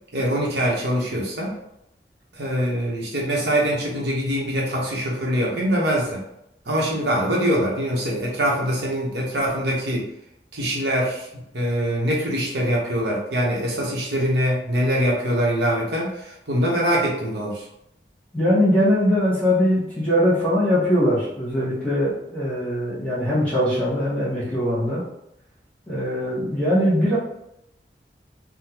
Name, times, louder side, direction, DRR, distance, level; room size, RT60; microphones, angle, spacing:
voice 1, 0.1-1.5 2.4-6.2 6.7-10.1 10.5-17.6, equal, 75° right, -3 dB, 1.0 m, -23 dB
voice 2, 18.3-25.0 25.9-27.2, equal, 10° left, -8 dB, 1.0 m, -21 dB
3.6 x 2.2 x 2.9 m, 0.80 s
head